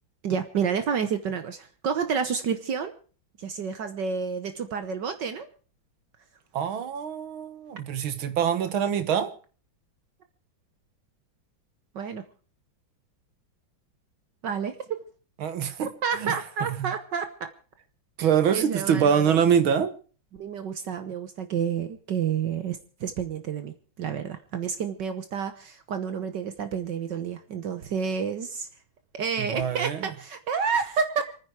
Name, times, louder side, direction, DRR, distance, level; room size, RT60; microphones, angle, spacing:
voice 1, 0.2-2.9 3.4-5.5 12.0-12.2 14.4-14.8 16.0-17.5 18.5-19.4 20.3-28.7 29.1-31.3, right 6 dB, 65° right, 1.7 m, -29 dB
voice 2, 6.5-9.3 15.4-15.9 16.2-16.3 16.6-16.9 18.2-20.0 29.4-30.1, right 8 dB, 85° right, 2.1 m, -24 dB
27.0 x 9.9 x 4.7 m
omnidirectional pair, 2.2 m